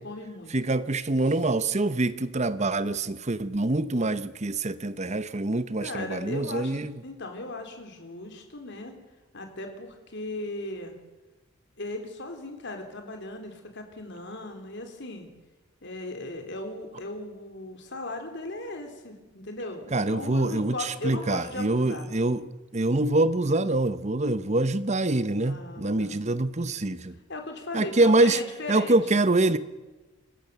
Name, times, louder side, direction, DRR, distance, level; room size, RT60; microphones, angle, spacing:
voice 1, 0.0-0.5 5.8-8.9 9.3-11.0 11.8-15.3 15.8-22.1 25.4-26.2 27.3-29.0, left 2 dB, 55° left, 3.5 m, -37 dB
voice 2, 0.5-7.0 19.9-27.2 27.7-28.4 28.7-29.6, right 2 dB, 35° right, 0.9 m, -25 dB
26.5 x 14.5 x 6.8 m
head